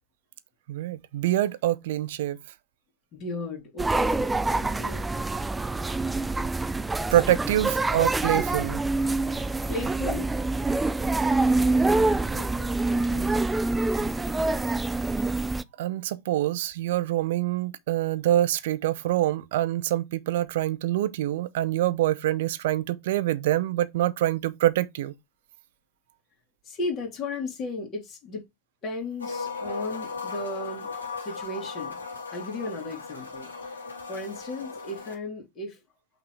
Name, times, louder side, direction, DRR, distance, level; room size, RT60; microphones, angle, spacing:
voice 1, 0.7-2.4 7.1-8.8 15.8-25.1, right 13 dB, 55° right, 0.6 m, -25 dB
voice 2, 3.1-4.2 4.5-5.1 9.7-10.3 11.4-13.5 13.9-14.8 26.6-28.4 28.8-30.9 31.2-32.0 32.3-33.5 34.1-35.8, left 2 dB, 35° left, 2.5 m, -36 dB
sound 1, 3.8-15.6, right 2 dB, 10° right, 0.3 m, -26 dB
sound 2, 29.2-35.1, left 4 dB, 70° left, 2.1 m, -37 dB
5.7 x 3.8 x 4.7 m
figure-of-eight pair, 90°, 0 cm